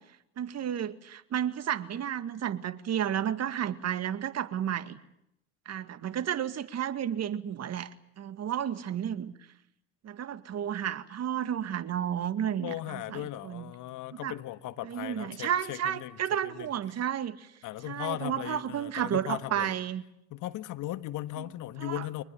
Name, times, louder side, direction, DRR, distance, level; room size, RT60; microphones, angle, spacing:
voice 1, 0.4-5.0 5.7-7.9 8.2-9.3 10.0-13.7 14.1-14.3 14.8-17.5 17.9-20.0 21.4-21.5 21.8-22.1, right 9 dB, 45° right, 2.1 m, -32 dB
voice 2, 12.6-16.2 16.4-16.7 17.6-19.7 20.3-22.2, left 15 dB, 60° left, 1.7 m, -37 dB
25.0 x 20.5 x 9.2 m
hypercardioid pair, 75°, 34 cm